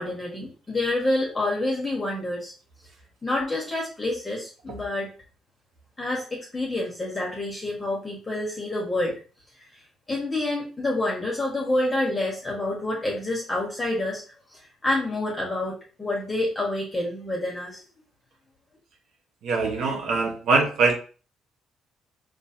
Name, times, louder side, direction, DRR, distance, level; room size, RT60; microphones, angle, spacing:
voice 1, 0.0-2.5 3.2-5.1 6.0-9.1 9.6-9.7 10.1-14.2 14.5-17.8, left 2 dB, 15° left, -3 dB, 1.7 m, -28 dB
voice 2, 19.4-20.9, right 3 dB, 70° right, 2 dB, 1.4 m, -22 dB
5.0 x 3.3 x 2.9 m, 0.36 s
cardioid pair, 110°, 0 cm